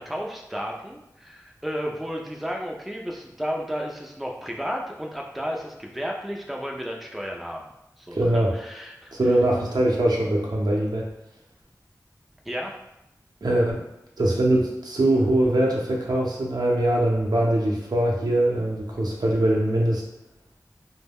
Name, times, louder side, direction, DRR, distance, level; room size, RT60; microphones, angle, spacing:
voice 1, 0.0-7.7 8.0-9.4 12.5-12.7, equal, ahead, 0 dB, 0.3 m, -33 dB
voice 2, 8.1-8.5 9.1-11.1 13.4-13.8 14.2-20.0, right 1 dB, 70° right, -2 dB, 0.6 m, -22 dB
2.2 x 2.1 x 3.3 m, 0.86 s
wide cardioid pair, 60°, 7 cm